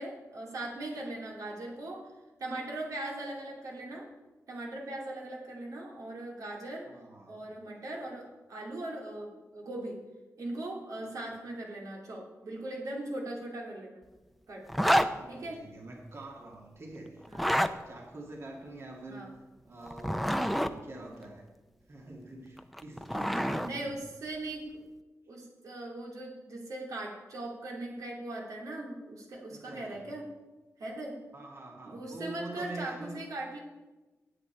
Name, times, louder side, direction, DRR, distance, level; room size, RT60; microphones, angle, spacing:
voice 1, 0.0-2.1 2.4-4.1 4.5-6.9 7.3-10.0 10.4-14.0 14.5-14.6 15.3-15.6 17.3-17.6 19.1-19.3 23.5-24.7 25.3-30.3 30.8-31.2 31.8-33.6, right 2 dB, 80° right, -2 dB, 2.7 m, -39 dB
voice 2, 6.9-7.5 11.1-11.2 14.8-19.3 19.6-21.5 21.9-23.9 29.5-30.0 31.3-33.2, right 2 dB, 50° right, -1 dB, 2.0 m, -45 dB
Zipper (clothing), 14.7-15.1 17.2-17.7 19.9-20.7 22.6-23.7, equal, ahead, 0.7 m, -27 dB
17.0 x 7.8 x 4.5 m, 1.1 s
cardioid pair, 80°, 6 cm